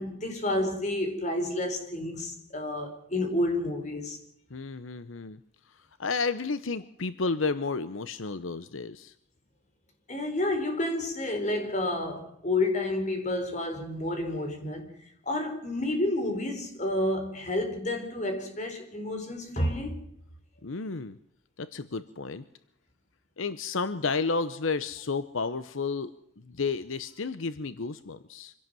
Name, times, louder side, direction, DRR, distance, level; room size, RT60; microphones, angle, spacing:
voice 1, 0.0-4.2 10.1-14.9 15.2-20.0, left 1 dB, 35° left, 4.3 m, -30 dB
voice 2, 4.5-5.4 5.7-9.1 20.6-21.2 21.6-22.4 23.4-26.1 26.5-28.5, left 4 dB, 80° left, 0.9 m, -32 dB
25.0 x 16.5 x 7.7 m
head